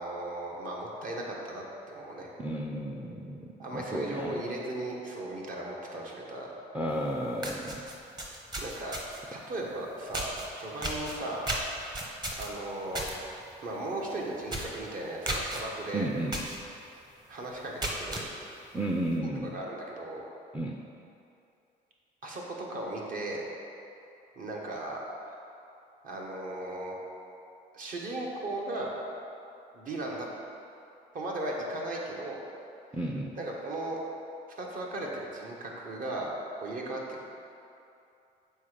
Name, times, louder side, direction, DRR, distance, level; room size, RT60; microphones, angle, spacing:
voice 1, 0.0-2.3 3.6-6.5 8.6-9.0 9.3-11.4 12.4-13.1 13.6-16.1 17.3-18.3 19.2-20.2 22.2-23.5 24.4-25.4 26.0-27.0 27.7-28.9 29.7-30.3 31.1-32.4 33.3-34.0 34.6-36.3 36.6-37.2, right 2 dB, 55° right, -2 dB, 1.3 m, -36 dB
voice 2, 2.4-4.4 6.7-7.8 15.9-16.4 18.7-19.5 20.5-20.8 32.9-33.4, right 1 dB, 10° right, 0 dB, 0.4 m, -33 dB
sound 1, 7.0-7.1 7.4-9.3 10.1-10.5 10.8-13.2 13.5-13.8 14.0-14.1 14.5-14.8 15.3-15.6 16.3-16.6 17.0-17.1 17.6-18.3, right 1 dB, 25° right, 1.0 m, -34 dB
7.1 x 4.5 x 5.0 m, 2.7 s
cardioid pair, 110°, 17 cm